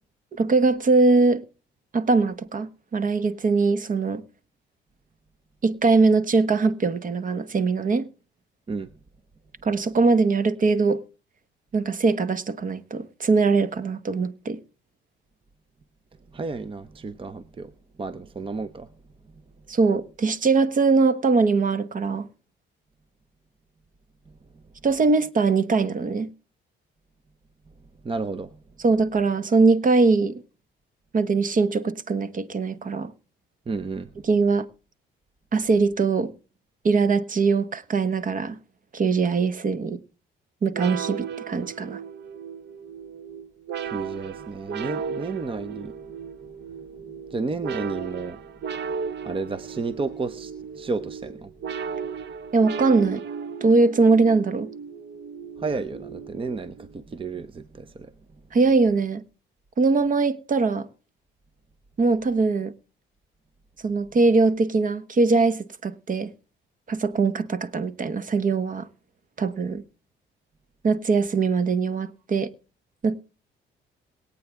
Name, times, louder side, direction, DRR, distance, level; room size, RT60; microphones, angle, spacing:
voice 1, 0.4-1.4 1.9-4.2 5.6-8.1 9.6-11.0 11.7-14.6 19.7-22.3 24.8-26.3 28.8-30.4 31.1-33.1 34.3-34.7 35.5-36.3 36.8-38.6 38.9-40.0 40.6-42.0 52.5-53.2 53.6-54.7 58.5-59.2 59.8-60.9 62.0-62.7 63.8-66.3 66.9-68.9 69.4-69.8 70.8-72.5 73.0-73.2, right 4 dB, 40° right, 1.1 m, -21 dB
voice 2, 16.3-17.7 18.0-18.9 28.0-28.6 33.7-34.1 43.9-45.9 47.3-48.4 49.2-51.5 55.6-58.1, right 4 dB, 25° right, 0.7 m, -32 dB
sound 1, 40.7-57.0, right 6 dB, 60° right, 0.8 m, -35 dB
22.0 x 8.6 x 3.5 m
cardioid pair, 90°, 20 cm